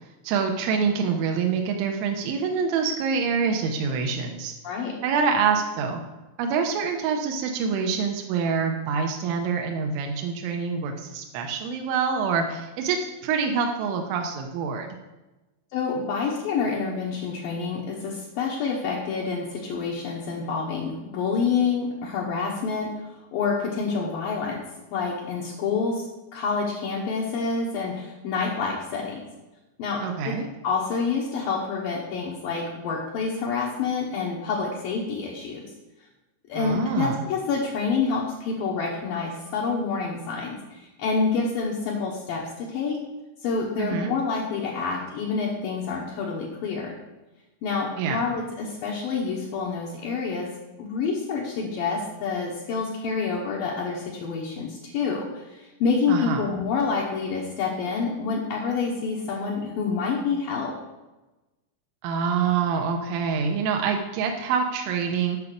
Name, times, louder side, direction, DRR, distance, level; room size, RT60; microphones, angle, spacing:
voice 1, 0.2-4.5 5.0-6.0 6.4-14.9 30.0-30.5 36.6-37.2 43.8-44.1 48.0-48.2 56.1-56.4 62.0-65.4, right 6 dB, 85° right, 3 dB, 3.1 m, -26 dB
voice 2, 4.6-5.0 15.7-24.6 24.9-26.1 26.3-29.3 29.8-30.3 30.6-35.7 36.5-43.0 43.4-46.9 47.6-50.5 50.8-60.8, left 5 dB, 80° left, -3 dB, 2.0 m, -27 dB
8.3 x 5.9 x 6.5 m, 1.1 s
omnidirectional pair, 5.6 m